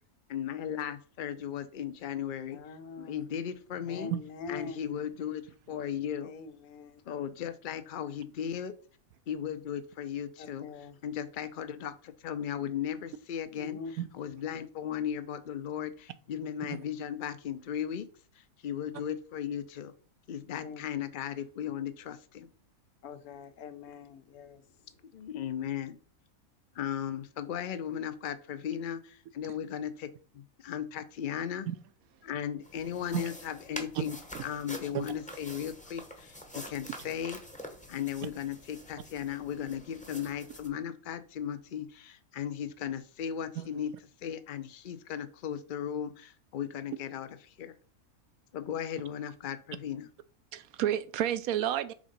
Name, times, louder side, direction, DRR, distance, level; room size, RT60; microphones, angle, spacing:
voice 1, 0.3-2.6 3.0-4.1 4.5-6.4 7.0-8.7 9.3-10.7 11.0-13.8 14.1-18.1 18.4-19.9 20.3-22.5 25.1-26.0 26.7-30.1 30.3-31.7 32.2-34.2 34.4-37.4 37.9-43.9 44.2-47.8 48.5-50.1, left 9 dB, 55° left, 0.6 m, -36 dB
voice 2, 2.5-3.3 3.9-5.0 6.2-7.0 10.4-11.0 13.5-14.0 20.6-21.1 23.0-25.1, left 4 dB, 80° left, 1.1 m, -44 dB
sound 1, 32.6-40.7, equal, 5° left, 0.7 m, -46 dB
voice 3, 50.5-51.9, right 11 dB, 80° right, 1.0 m, -30 dB
5.0 x 3.7 x 5.2 m
omnidirectional pair, 1.5 m